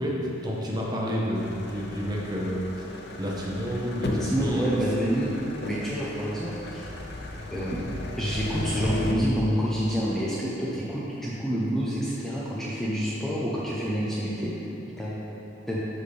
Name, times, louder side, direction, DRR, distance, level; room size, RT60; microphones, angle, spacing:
voice 1, 0.0-4.8, equal, 20° right, -3 dB, 0.9 m, -30 dB
sound 1, 1.3-9.1, left 2 dB, 60° left, 0.6 m, -36 dB
voice 2, 4.0-7.0 7.5-7.8 8.2-14.5 15.0-15.2 15.7-15.8, equal, ahead, -8 dB, 0.6 m, -28 dB
10.5 x 4.3 x 3.3 m, 3.0 s
head